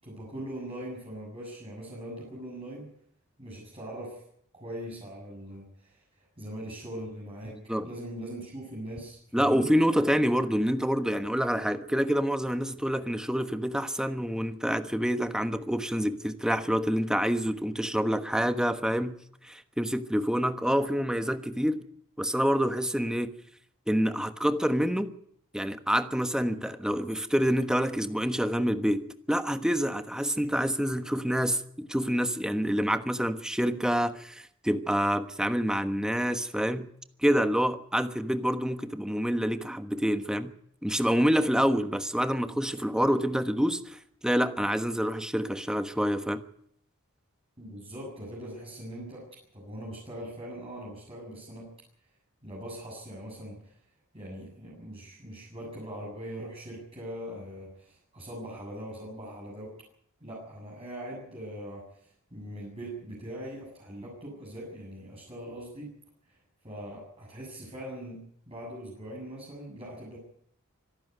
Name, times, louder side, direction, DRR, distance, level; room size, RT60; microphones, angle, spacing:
voice 1, 0.0-2.9 3.4-4.2 4.5-6.0 6.4-7.6 7.8-9.7 47.6-51.7 52.4-53.7 54.1-59.7 60.2-65.9 66.3-66.4 66.6-70.2, right 1 dB, 25° right, 7.6 m, -41 dB
voice 2, 9.3-19.2 19.4-21.8 22.2-23.3 23.9-25.1 25.5-36.9 37.2-40.5 40.8-46.4, equal, 5° right, 1.2 m, -27 dB
25.5 x 12.0 x 9.4 m
head